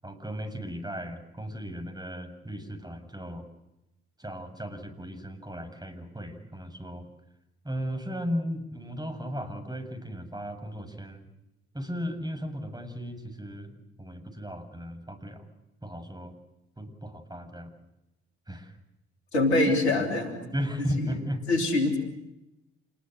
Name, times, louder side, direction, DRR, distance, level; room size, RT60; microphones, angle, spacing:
voice 1, 0.0-3.5 4.2-7.1 7.6-11.2 11.7-15.4 15.8-16.3 16.8-17.7 18.5-18.7 20.4-21.5, equal, 10° right, 6 dB, 7.1 m, -36 dB
voice 2, 19.3-20.4 21.5-22.0, left 2 dB, 90° left, 4 dB, 3.3 m, -24 dB
28.0 x 20.5 x 8.0 m, 0.93 s
hypercardioid pair, 40°, 32 cm